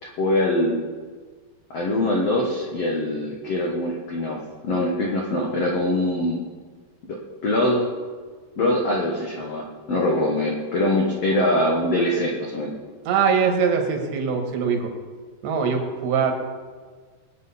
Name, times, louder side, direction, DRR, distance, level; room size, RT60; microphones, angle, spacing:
voice 1, 0.0-0.8 1.7-6.5 7.1-7.9 8.6-12.7, left 1 dB, 75° left, -1 dB, 1.4 m, -23 dB
voice 2, 13.1-14.9 15.4-16.3, right 6 dB, 75° right, 4 dB, 3.6 m, -22 dB
21.5 x 9.2 x 4.2 m, 1.5 s
omnidirectional pair, 5.1 m